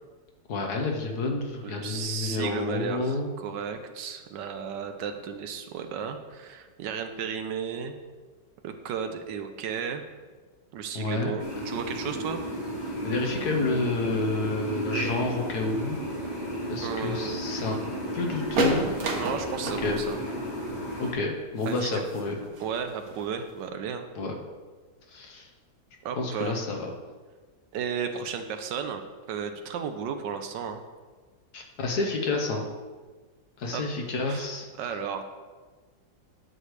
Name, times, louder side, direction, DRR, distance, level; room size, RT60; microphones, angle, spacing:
voice 1, 0.5-3.3 10.9-11.3 13.0-16.0 16.7-17.8 18.1-18.9 19.8-20.0 21.0-22.4 24.1-24.3 25.1-25.5 26.2-26.9 31.5-32.6 33.6-34.7, left 3 dB, 60° left, 2 dB, 1.4 m, -29 dB
voice 2, 1.6-8.0 8.6-10.0 10.7-12.4 16.8-17.4 19.2-20.2 21.7-21.9 22.6-24.1 26.0-26.6 27.7-29.0 29.3-30.8 33.7-33.8 34.3-34.5 34.8-35.2, right 7 dB, 75° right, 7 dB, 1.3 m, -34 dB
sound 1, 11.4-21.1, equal, 45° left, 2.3 m, -34 dB
sound 2, 18.5-23.7, right 3 dB, 55° right, 1.4 m, -32 dB
10.5 x 6.5 x 3.2 m, 1.4 s
omnidirectional pair, 2.0 m